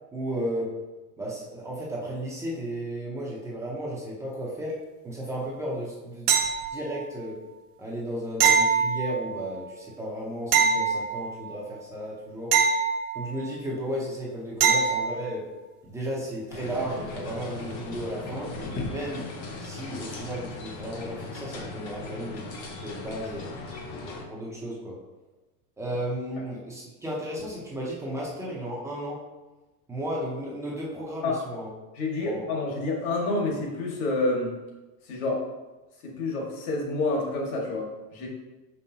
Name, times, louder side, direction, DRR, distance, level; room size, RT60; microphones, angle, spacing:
voice 1, 0.1-0.8 1.2-4.8 5.0-6.3 6.7-7.4 7.8-12.5 13.1-15.5 15.9-19.3 19.6-23.5 24.0-25.0 25.8-29.2 29.9-31.7 32.2-32.4, equal, 5° right, -5 dB, 0.5 m, -34 dB
sound 1, 6.3-7.0 8.4-9.5 10.5-11.5 12.5-13.5 14.6-15.2 18.0-18.1, right 6 dB, 75° right, 1.3 m, -23 dB
sound 2, 16.5-24.2, left 3 dB, 30° left, 0.8 m, -38 dB
voice 2, 31.9-34.6 35.0-35.5 36.0-38.3, left 2 dB, 65° left, -2 dB, 1.9 m, -28 dB
6.2 x 5.4 x 2.8 m, 1.1 s
supercardioid pair, 165°, 46 cm